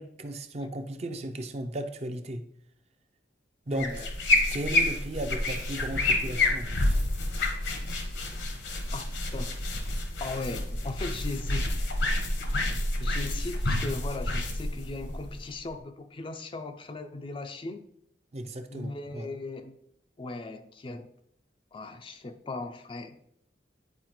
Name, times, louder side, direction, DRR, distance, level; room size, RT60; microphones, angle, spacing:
voice 1, 0.0-2.4 3.7-4.1 4.5-6.8 18.3-19.3, right 1 dB, 35° right, 7 dB, 0.5 m, -35 dB
sound 1, 3.7-15.7, left 2 dB, 75° left, 1.0 m, -29 dB
voice 2, 3.7-4.1 8.9-9.7 10.2-11.8 13.0-17.9 18.7-19.8 20.2-21.1 21.7-23.2, left 3 dB, 30° left, 8 dB, 0.4 m, -38 dB
9.4 x 4.2 x 3.0 m, 0.72 s
head